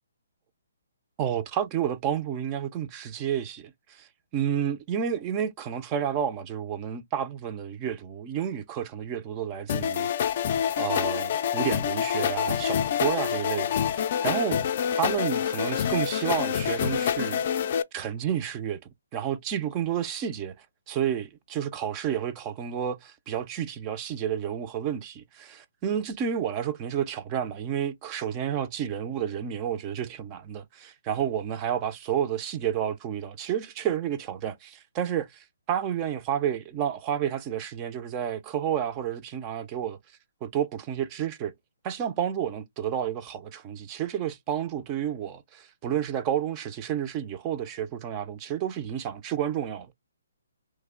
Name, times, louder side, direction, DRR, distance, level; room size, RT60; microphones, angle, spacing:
voice 1, 1.2-10.1 10.8-14.7 14.9-17.4 17.9-18.8 19.1-40.0 40.4-41.5 41.8-49.9, right 9 dB, 20° right, 0.4 m, -30 dB
sound 1, 9.7-17.8, left 9 dB, 40° left, 0.4 m, -27 dB
3.1 x 2.1 x 3.6 m
hypercardioid pair, 160°, 0 cm